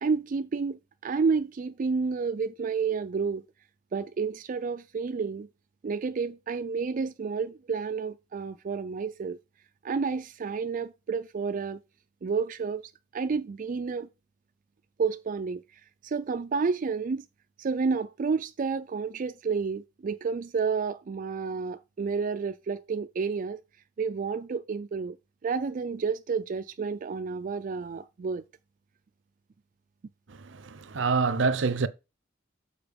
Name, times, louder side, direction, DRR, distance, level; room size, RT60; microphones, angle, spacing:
voice 1, 0.0-3.4 3.9-5.5 5.8-9.4 9.8-11.8 12.2-14.1 15.0-15.6 16.0-17.2 17.6-23.6 24.0-25.2 25.4-28.4, right 5 dB, 45° right, 0.4 m, -30 dB
voice 2, 30.3-31.9, right 4 dB, 70° right, 0.7 m, -27 dB
6.9 x 4.3 x 5.2 m
head